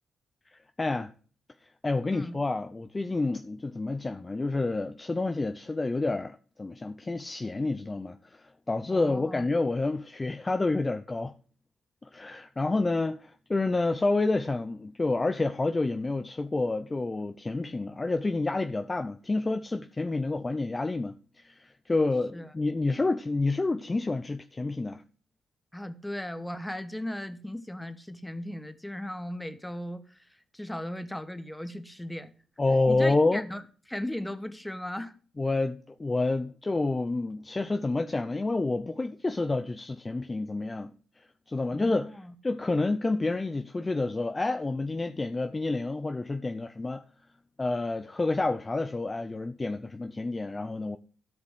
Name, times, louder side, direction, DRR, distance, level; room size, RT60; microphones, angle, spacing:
voice 1, 0.8-1.1 1.8-11.3 12.1-21.2 21.4-25.0 32.6-33.5 35.4-40.9 41.5-42.1 42.4-47.0 47.6-51.0, left 3 dB, 30° left, 0.7 m, -29 dB
voice 2, 8.9-9.5 22.3-22.5 25.7-30.2 30.5-32.3 32.9-33.6 33.9-35.1 41.7-42.3, left 1 dB, 10° left, 1.3 m, -37 dB
13.0 x 5.2 x 6.3 m
supercardioid pair, 50°, 0 cm